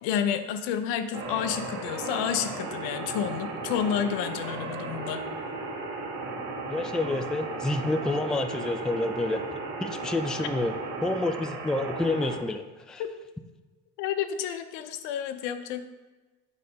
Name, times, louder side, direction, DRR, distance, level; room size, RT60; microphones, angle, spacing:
voice 1, 0.0-5.2 14.0-15.8, left 9 dB, 70° left, 8 dB, 0.9 m, -30 dB
sound 1, 1.1-12.4, right 3 dB, 85° right, 2.1 m, -35 dB
voice 2, 6.7-9.4 9.8-10.7 11.0-13.0, left 2 dB, ahead, 6 dB, 0.4 m, -28 dB
8.4 x 4.1 x 5.1 m, 1.2 s
hypercardioid pair, 70°, 46 cm